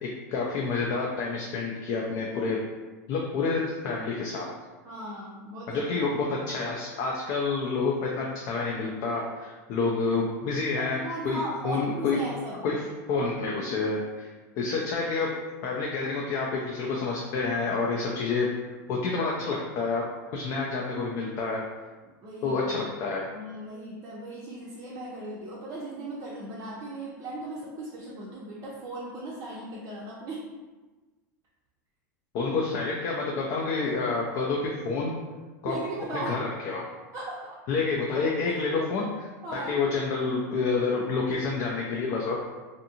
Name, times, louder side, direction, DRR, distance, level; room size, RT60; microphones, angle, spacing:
voice 1, 0.0-2.6 3.1-4.5 5.7-11.0 11.2-11.4 11.6-12.2 12.6-12.8 13.1-14.3 14.6-15.3 15.6-18.5 18.9-20.0 20.3-21.6 22.4-23.2 32.3-35.2 35.6-35.8 36.1-36.9 37.7-39.1 39.5-42.4, left 4 dB, 50° left, -2 dB, 0.4 m, -28 dB
voice 2, 4.8-5.9 10.8-12.7 22.2-23.0 23.3-30.5 32.5-32.6 35.6-36.4 37.1-37.6 38.5-38.9 39.4-39.8, right 2 dB, 35° right, -5 dB, 0.5 m, -37 dB
2.6 x 2.5 x 2.7 m, 1.3 s
supercardioid pair, 125°, 9 cm